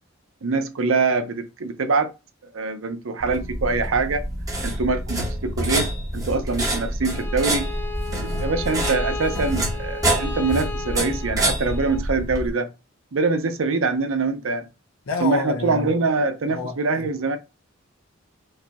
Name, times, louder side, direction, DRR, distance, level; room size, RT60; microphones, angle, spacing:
voice 1, 0.4-2.1 2.5-4.2 4.6-7.7 8.1-12.7 13.1-14.7 15.2-17.4, right 3 dB, 75° right, 0.6 m, -24 dB
sound 1, 3.2-12.5, right 1 dB, 15° right, 0.9 m, -27 dB
Bowed string instrument, 7.0-12.0, left 4 dB, 10° left, 0.3 m, -35 dB
voice 2, 15.1-15.9 16.5-17.0, left 3 dB, 80° left, 0.7 m, -28 dB
4.8 x 2.2 x 2.8 m
head